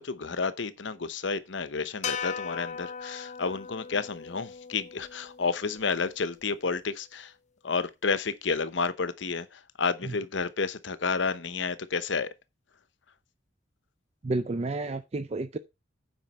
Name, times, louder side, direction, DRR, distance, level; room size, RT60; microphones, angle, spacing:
voice 1, 0.0-7.3 7.6-12.3, left 4 dB, 70° left, 0.8 m, -31 dB
sound 1, 2.0-6.4, left 6 dB, 40° left, 0.7 m, -39 dB
voice 2, 14.2-15.6, right 2 dB, 35° right, 0.5 m, -30 dB
9.0 x 5.1 x 5.4 m
head